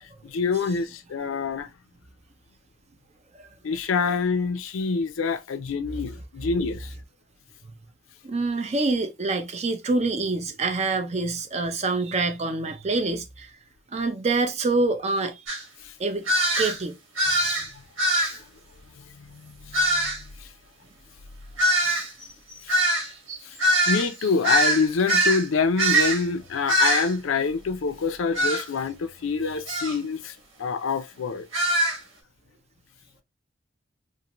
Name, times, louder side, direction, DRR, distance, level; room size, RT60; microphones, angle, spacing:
voice 1, 0.3-1.7 3.6-6.9 19.3-20.1 22.7-22.8 23.9-30.3 30.6-31.5, left 5 dB, 85° left, 0.5 m, -26 dB
voice 2, 8.2-13.5 13.9-15.4 16.0-16.9, right 3 dB, 35° right, 0.5 m, -26 dB
sound 1, 15.5-15.6 16.3-16.8 17.2-17.7 18.0-18.4 19.7-20.2 21.6-25.4 25.8-26.2 26.7-27.1 28.4-28.6 29.7-29.9 31.5-32.0, right 1 dB, 80° right, 1.4 m, -22 dB
2.6 x 2.5 x 2.9 m
head